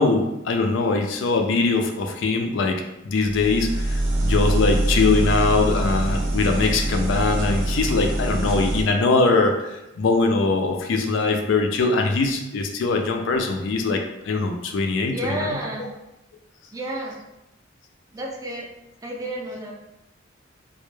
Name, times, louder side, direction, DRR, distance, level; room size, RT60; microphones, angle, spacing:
voice 1, 0.0-15.6, left 3 dB, 70° left, 4 dB, 0.3 m, -22 dB
sound 1, 3.2-8.8, right 1 dB, 70° right, 0.5 m, -24 dB
voice 2, 15.1-15.9 16.7-17.2 18.1-18.7 19.0-19.7, right 1 dB, 20° right, -1 dB, 0.3 m, -30 dB
2.1 x 2.0 x 3.0 m, 0.93 s
head